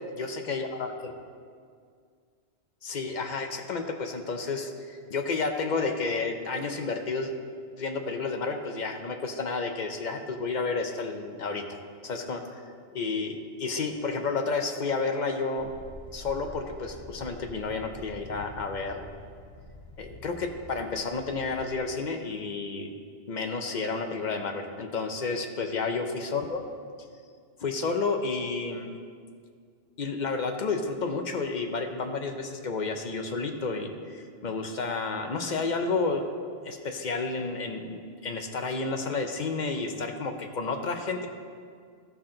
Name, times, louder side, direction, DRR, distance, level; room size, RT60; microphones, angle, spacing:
voice 1, 0.2-1.1 2.8-7.3 7.8-11.8 12.0-15.7 16.1-19.1 20.0-22.9 23.3-26.6 27.6-28.9 30.0-36.2 36.6-41.3, left 4 dB, 50° left, 5 dB, 0.8 m, -31 dB
sound 1, 15.6-21.8, left 2 dB, 65° left, 1.2 m, -47 dB
13.5 x 5.7 x 3.8 m, 2.1 s
omnidirectional pair, 1.1 m